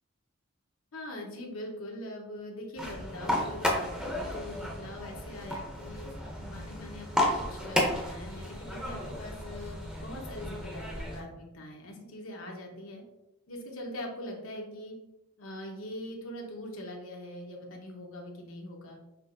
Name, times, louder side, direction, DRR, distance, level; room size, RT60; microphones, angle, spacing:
voice 1, 0.9-6.1 6.4-13.0 13.5-14.9 15.4-19.0, left 1 dB, 90° left, 0 dB, 1.0 m, -42 dB
sound 1, 2.8-11.2, left 1 dB, 5° right, 0.6 m, -33 dB
6.0 x 2.9 x 2.6 m, 0.91 s
head